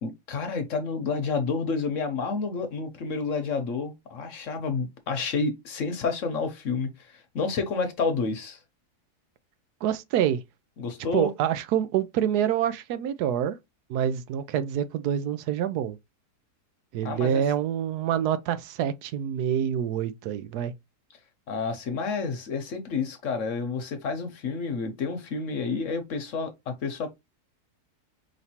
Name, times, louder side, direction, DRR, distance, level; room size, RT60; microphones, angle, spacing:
voice 1, 0.0-8.6 10.8-11.3 17.0-17.4 21.5-27.1, left 4 dB, 60° left, 1.0 m, -30 dB
voice 2, 9.8-10.4 11.1-13.6 13.9-16.0 16.9-20.7, right 10 dB, 80° right, 1.1 m, -26 dB
4.9 x 3.2 x 2.8 m
omnidirectional pair, 1.7 m